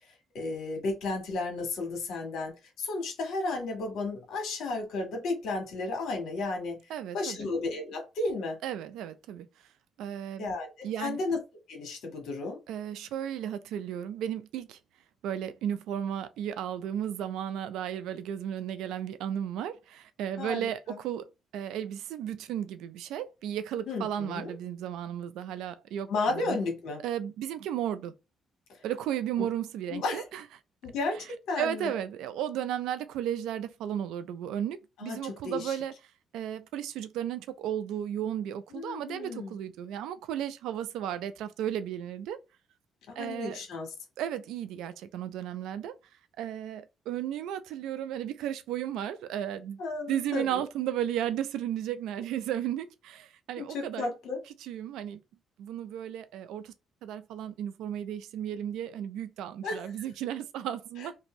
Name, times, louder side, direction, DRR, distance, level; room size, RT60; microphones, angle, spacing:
voice 1, 0.3-2.5 2.8-6.8 7.1-8.6 10.4-10.7 11.0-11.4 11.7-12.6 20.4-20.7 23.9-24.5 26.1-27.0 29.9-30.2 30.8-31.9 35.0-35.8 38.7-39.6 43.1-43.9 49.8-50.6 53.6-54.4 59.6-59.9, left 3 dB, 80° left, 1.3 m, -33 dB
voice 2, 6.9-7.5 8.6-9.5 10.0-10.5 10.8-11.2 12.7-14.8 15.2-26.6 27.0-28.1 28.8-30.4 31.6-35.9 36.3-42.4 43.2-43.6 44.2-45.9 46.4-49.8 50.1-54.1 54.6-55.2 55.6-56.7 57.0-61.1, right 10 dB, 90° right, 0.4 m, -34 dB
2.6 x 2.5 x 3.0 m
cardioid pair, 90°, 0 cm